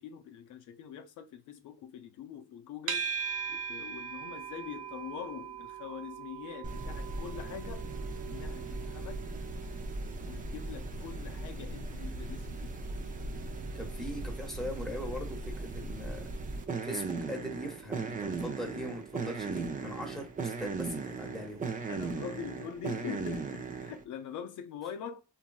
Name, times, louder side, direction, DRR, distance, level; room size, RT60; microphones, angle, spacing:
voice 1, 0.0-3.2 3.5-7.9 8.2-9.2 10.3-12.7 21.9-25.2, left 8 dB, 75° left, 0.5 m, -43 dB
sound 1, 2.9-20.1, right 7 dB, 85° right, 0.7 m, -43 dB
sound 2, 6.6-24.0, right 3 dB, 25° right, 0.4 m, -38 dB
voice 2, 13.7-16.3 16.8-21.6, equal, ahead, 0.9 m, -40 dB
2.9 x 2.6 x 2.2 m
cardioid pair, 90°, 30 cm